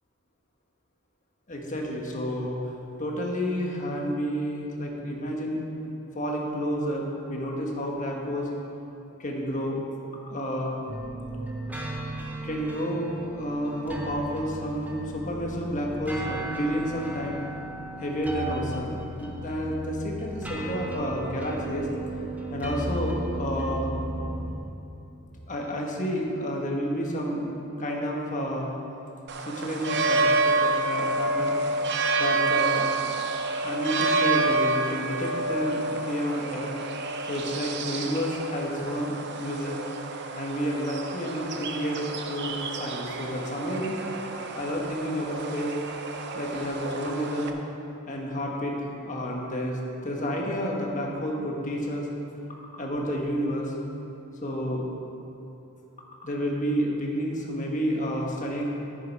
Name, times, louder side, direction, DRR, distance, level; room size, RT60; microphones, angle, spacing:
voice 1, 1.5-2.6 3.0-5.6 6.1-8.5 9.2-9.9 10.3-10.7 12.4-17.4 18.0-21.9 22.5-23.9 25.5-27.5 27.8-28.7 29.4-31.5 32.2-32.9 33.6-36.7 37.3-39.7 40.3-44.0 44.5-45.7 46.3-47.5 48.1-48.7 49.0-52.1 52.7-53.7 54.4-54.9 56.2-58.7, equal, 35° left, -1 dB, 1.4 m, -30 dB
sound 1, 10.9-24.5, right 1 dB, 5° right, 0.9 m, -35 dB
sound 2, 29.3-47.5, right 3 dB, 50° right, 0.7 m, -29 dB
10.5 x 9.5 x 4.7 m, 2.9 s
head